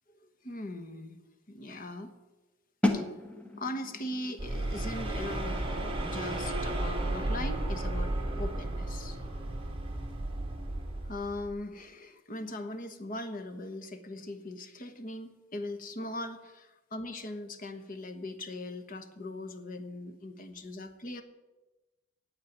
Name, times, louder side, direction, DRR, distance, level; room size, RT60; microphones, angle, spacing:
voice 1, 0.2-1.2 1.5-2.1 2.9-3.1 3.6-9.2 11.0-21.2, left 1 dB, 45° left, 8 dB, 1.2 m, -40 dB
sound 1, 2.8-8.5, left 1 dB, 5° left, 1.3 m, -36 dB
sound 2, 4.4-11.5, right 1 dB, 25° right, 1.9 m, -33 dB
8.8 x 8.5 x 9.5 m, 1.1 s
head